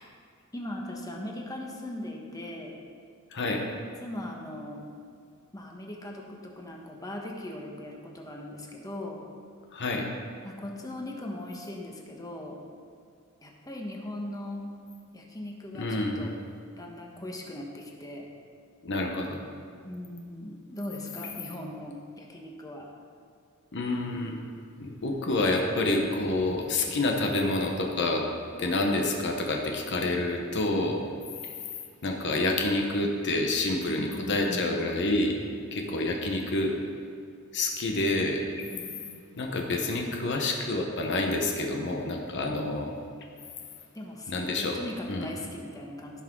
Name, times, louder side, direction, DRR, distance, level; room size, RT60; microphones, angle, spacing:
voice 1, 0.5-2.8 4.0-4.9 5.5-9.2 10.4-12.6 13.4-14.6 15.1-16.3 16.8-18.3 19.8-22.9 28.8-29.1 33.9-34.8 38.5-39.0 43.9-46.2, left 1 dB, 15° left, 0 dB, 1.2 m, -39 dB
voice 2, 3.3-3.6 9.7-10.1 15.8-16.3 18.8-19.4 23.7-24.4 24.8-28.2 28.6-31.0 32.0-35.4 35.7-36.7 37.5-38.4 39.4-42.9 44.3-44.8 45.1-45.3, left 2 dB, 55° left, 2 dB, 1.0 m, -28 dB
15.5 x 6.0 x 3.8 m, 2.2 s
head